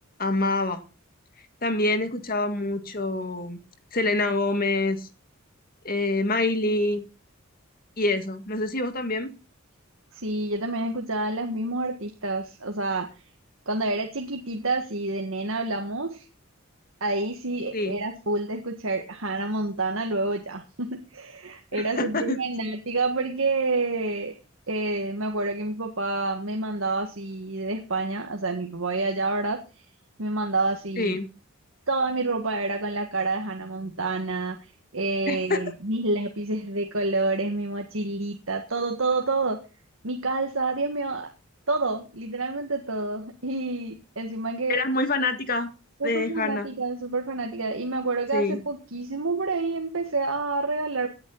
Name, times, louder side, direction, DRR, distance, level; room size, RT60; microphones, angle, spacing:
voice 1, 0.2-0.8 1.6-3.6 3.9-5.1 5.8-7.0 8.0-9.3 17.7-18.0 21.7-22.4 31.0-31.3 35.3-35.6 44.7-45.7 46.0-46.7 48.3-48.6, left 2 dB, 45° left, 8 dB, 1.9 m, -26 dB
voice 2, 10.1-13.1 13.6-16.2 17.0-24.4 24.7-29.6 30.2-31.1 31.9-39.6 40.0-41.3 41.7-44.8 46.0-51.1, right 2 dB, 70° right, 3 dB, 1.7 m, -28 dB
18.0 x 9.7 x 4.0 m, 0.32 s
head